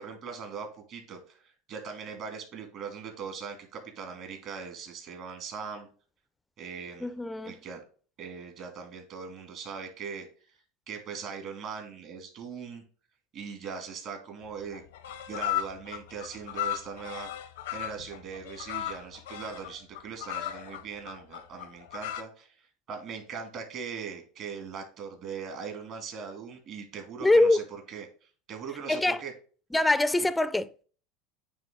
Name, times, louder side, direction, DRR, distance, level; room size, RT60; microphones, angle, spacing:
voice 1, 0.0-5.9 6.6-7.1 7.5-7.8 8.2-10.6 10.9-12.8 13.3-14.8 15.3-27.6 27.9-28.1 28.5-29.3, right 6 dB, 50° right, 2.4 m, -40 dB
voice 2, 7.0-7.6 27.2-27.6 28.9-29.2 29.7-30.8, left 2 dB, 10° left, 0.4 m, -24 dB
sound 1, 14.4-14.5 14.7-22.2, left 12 dB, 85° left, 0.7 m, -36 dB
8.9 x 3.3 x 3.8 m
supercardioid pair, 105°, 0 cm